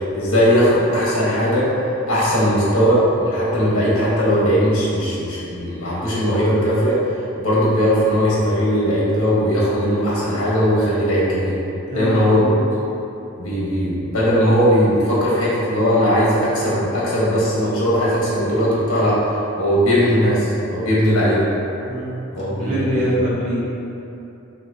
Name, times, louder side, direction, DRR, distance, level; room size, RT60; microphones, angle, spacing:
voice 1, 0.0-1.7 2.1-7.0 7.4-11.5 11.9-12.4 13.4-21.5 22.3-23.1, equal, 85° left, -7 dB, 1.3 m, -18 dB
voice 2, 11.9-12.5 21.9-22.1 22.6-23.6, equal, 35° right, -8 dB, 1.0 m, -23 dB
5.8 x 2.8 x 2.8 m, 2.9 s
head